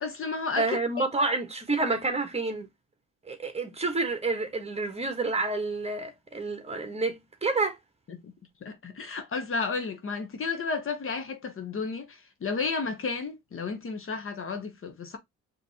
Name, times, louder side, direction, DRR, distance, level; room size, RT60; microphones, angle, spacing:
voice 1, 0.0-0.6 1.0-1.1 8.2-8.3 8.6-15.2, left 4 dB, 45° left, 1.0 m, -32 dB
voice 2, 0.6-2.7 3.2-7.8, right 3 dB, 20° right, 1.3 m, -29 dB
5.2 x 3.1 x 2.8 m
cardioid pair, 90°, 30 cm